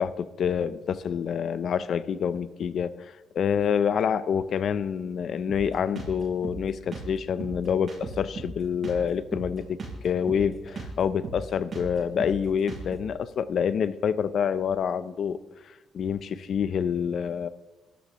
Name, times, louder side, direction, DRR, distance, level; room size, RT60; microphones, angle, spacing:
voice 1, 0.0-9.8 10.0-15.4 15.7-17.5, left 7 dB, 60° left, 14 dB, 0.7 m, -27 dB
Drum kit, 5.5-13.1, right 3 dB, 45° right, 6.3 m, -38 dB
28.5 x 13.0 x 3.1 m, 1.1 s
cardioid pair, 90°, 0 cm